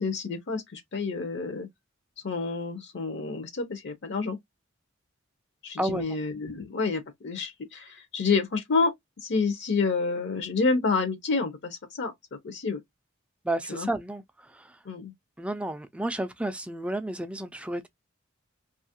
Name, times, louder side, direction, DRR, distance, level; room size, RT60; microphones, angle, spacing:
voice 1, 0.0-1.7 2.2-4.4 5.6-8.9 9.2-12.1 12.4-12.8 13.7-13.9 14.9-15.1, left 4 dB, 60° left, 0.6 m, -28 dB
voice 2, 5.8-6.2 13.4-14.8 15.4-17.9, right 1 dB, 5° right, 0.3 m, -32 dB
2.8 x 2.4 x 2.7 m
head